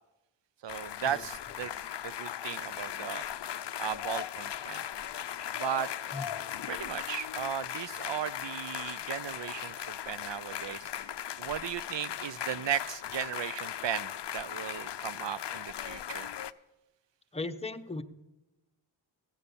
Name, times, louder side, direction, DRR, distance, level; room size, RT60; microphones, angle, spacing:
voice 1, 0.6-1.7 2.0-3.2 3.8-4.8 5.5-6.0 6.7-11.1 11.4-16.3, right 9 dB, 65° right, 17 dB, 0.6 m, -36 dB
sound 1, 0.7-16.5, left 10 dB, 60° left, 0.5 m, -38 dB
voice 2, 17.3-18.0, left 3 dB, 15° left, 7 dB, 0.8 m, -37 dB
16.0 x 9.7 x 7.0 m, 1.0 s
wide cardioid pair, 80°, 47 cm